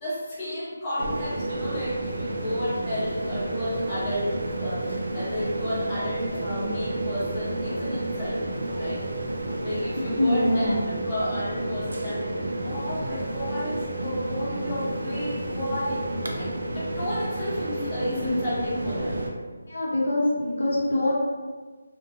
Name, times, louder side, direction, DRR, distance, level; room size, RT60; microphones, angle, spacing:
voice 1, 0.0-8.5 8.8-9.1 9.6-10.7 11.0-16.0 16.3-19.2, equal, 10° left, -13 dB, 0.6 m, -32 dB
sound 1, 1.0-19.3, right 1 dB, 80° right, 0.4 m, -31 dB
voice 2, 10.0-10.8 19.7-21.2, left 1 dB, 65° left, -4 dB, 0.7 m, -24 dB
2.5 x 2.1 x 2.7 m, 1.4 s
figure-of-eight pair, 175°, 0 cm